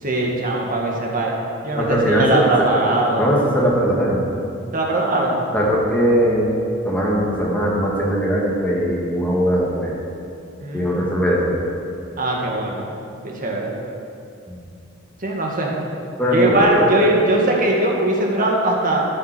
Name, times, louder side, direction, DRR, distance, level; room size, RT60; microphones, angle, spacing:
voice 1, 0.0-1.3 1.6-3.3 4.7-5.4 10.6-11.1 12.2-12.9 13.2-13.7 15.2-15.7 16.3-19.0, right 2 dB, 45° right, -1 dB, 1.9 m, -20 dB
voice 2, 1.8-2.4 3.2-4.2 5.5-6.5 6.8-10.0 10.7-11.5 14.5-14.6 16.2-16.9, equal, 5° left, -4 dB, 2.2 m, -19 dB
13.5 x 7.5 x 6.2 m, 2.5 s
head